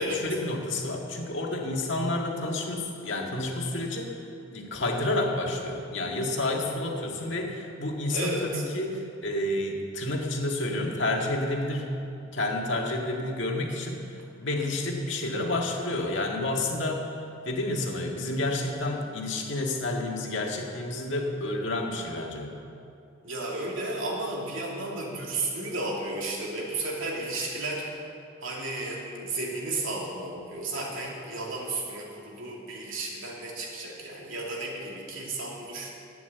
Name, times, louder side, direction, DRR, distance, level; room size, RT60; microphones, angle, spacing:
voice 1, 0.0-4.2 4.5-11.9 12.3-17.1 17.4-22.5, left 2 dB, 65° left, 0 dB, 1.9 m, -30 dB
voice 2, 8.1-8.6 23.2-28.0 28.4-35.9, right 2 dB, 80° right, -2 dB, 2.7 m, -33 dB
11.5 x 9.3 x 8.0 m, 2.7 s
head